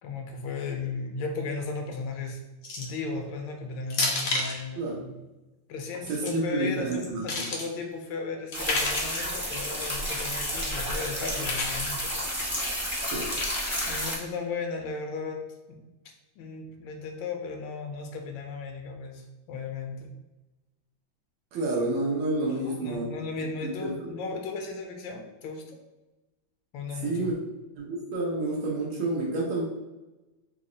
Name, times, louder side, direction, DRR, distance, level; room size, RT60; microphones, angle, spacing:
voice 1, 0.0-2.4 2.8-5.1 5.7-12.1 13.8-15.4 15.7-15.8 16.4-20.1 22.4-25.8 26.7-27.3, left 4 dB, 80° left, 3 dB, 1.3 m, -36 dB
sound 1, 2.6-3.0 3.9-4.6 5.9-6.3 6.9-7.7 8.5-9.2 10.1-10.5 11.4-11.9 13.4-14.0, left 2 dB, 65° left, 0.8 m, -31 dB
voice 2, 4.8-5.1 6.1-7.5 13.0-13.3 21.5-23.0 23.6-23.9 27.0-27.3 27.8-29.6, right 2 dB, 90° right, -4 dB, 1.6 m, -29 dB
sound 2, 8.5-14.2, equal, 10° right, 0.5 m, -31 dB
4.0 x 2.0 x 3.7 m, 1.1 s
omnidirectional pair, 2.1 m